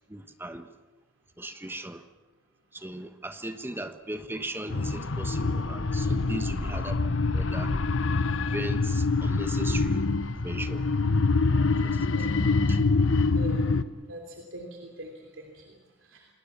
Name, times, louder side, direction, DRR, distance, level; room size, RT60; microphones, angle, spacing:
voice 1, 0.1-0.7 1.4-2.0 2.7-7.7 8.4-10.0 10.4-10.8 11.6-12.1 12.7-12.8, right 1 dB, 10° right, 9 dB, 1.2 m, -38 dB
sound 1, 4.7-13.8, left 3 dB, 80° left, 1.0 m, -25 dB
voice 2, 12.1-12.4 13.3-13.7 14.1-16.3, right 1 dB, 85° right, 2 dB, 3.2 m, -43 dB
28.5 x 19.5 x 7.4 m, 1.2 s
head